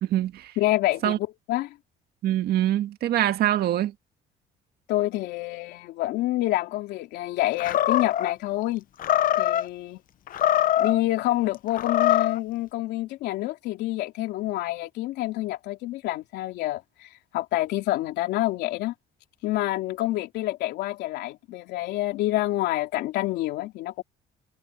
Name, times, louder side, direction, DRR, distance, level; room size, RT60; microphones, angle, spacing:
voice 1, 0.0-0.5 1.0-1.2 2.2-3.9, right 12 dB, 70° right, 2.0 m, -24 dB
voice 2, 0.6-1.7 4.9-8.8 9.4-10.0 10.8-18.9 19.4-24.0, left 16 dB, 85° left, 3.2 m, -27 dB
Animal, 7.6-8.3 9.0-9.7 10.3-11.0 11.7-12.4, left 12 dB, 55° left, 0.8 m, -23 dB
cardioid pair, 110°, 17 cm